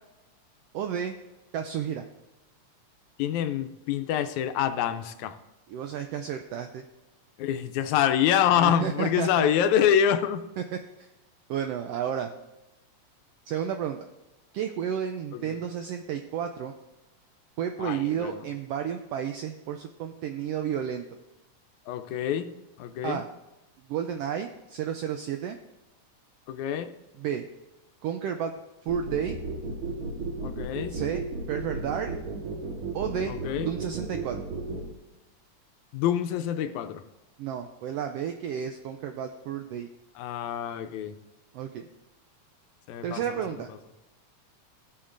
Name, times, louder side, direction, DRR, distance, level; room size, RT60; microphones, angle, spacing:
voice 1, 0.7-1.1 1.5-2.0 5.7-6.8 8.5-9.5 11.0-11.1 11.5-12.3 13.5-14.1 14.5-16.7 17.6-21.0 23.0-23.2 23.9-25.6 27.2-27.5 28.0-28.5 28.9-29.4 30.9-31.2 31.5-32.1 32.9-33.3 33.6-34.4 37.4-39.9 41.5-41.9 43.0-43.7, right 8 dB, 85° right, 6 dB, 1.4 m, -31 dB
voice 2, 3.2-5.4 7.4-10.4 15.3-15.6 17.8-18.4 21.9-22.5 22.8-23.2 26.5-26.9 30.4-31.0 33.3-33.7 35.9-37.0 40.2-41.1 42.9-43.4, left 9 dB, 85° left, 9 dB, 2.0 m, -26 dB
sound 1, 28.9-34.8, right 3 dB, 55° right, 1.9 m, -33 dB
15.5 x 7.3 x 2.5 m, 1.0 s
omnidirectional pair, 3.3 m